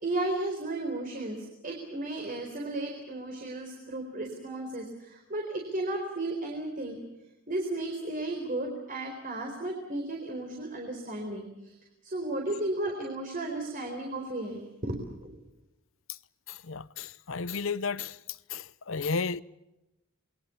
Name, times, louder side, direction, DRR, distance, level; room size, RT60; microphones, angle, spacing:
voice 1, 0.0-7.0 7.5-11.8 12.0-15.4, right 2 dB, 40° right, 4.3 m, -34 dB
voice 2, 16.5-18.2 18.5-19.4, left 4 dB, 70° left, 0.8 m, -33 dB
28.0 x 22.0 x 7.1 m
head